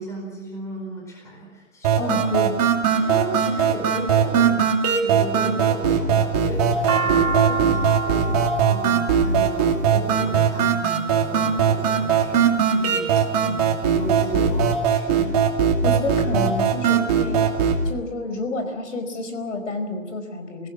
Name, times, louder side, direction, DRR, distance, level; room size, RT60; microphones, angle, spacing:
voice 1, 0.0-2.2 2.9-15.4, right 1 dB, 5° left, 0 dB, 4.5 m, -35 dB
sound 1, 1.8-17.8, right 7 dB, 30° right, 2.6 m, -20 dB
voice 2, 2.0-2.5 15.8-17.4 17.8-20.7, left 2 dB, 60° left, 7 dB, 4.9 m, -29 dB
sound 2, 6.4-10.7 11.5-12.0 12.6-13.2 13.6-13.7 13.8-14.7, right 4 dB, 80° right, 2.5 m, -29 dB
27.0 x 17.0 x 7.3 m, 1.3 s
hypercardioid pair, 160°, 41 cm